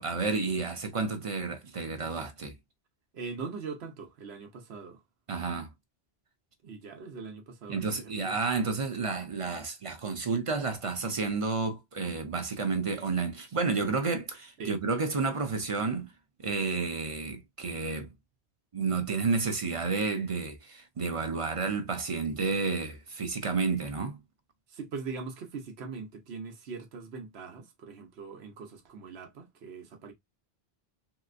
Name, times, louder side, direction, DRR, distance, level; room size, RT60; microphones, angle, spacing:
voice 1, 0.0-2.5 5.3-5.7 7.7-16.1 16.4-18.1 18.7-24.2, right 4 dB, 40° right, 0.6 m, -31 dB
voice 2, 3.1-5.0 6.6-8.4 14.6-14.8 24.7-30.1, right 4 dB, 85° right, 1.1 m, -41 dB
3.2 x 2.8 x 2.4 m
omnidirectional pair, 1.0 m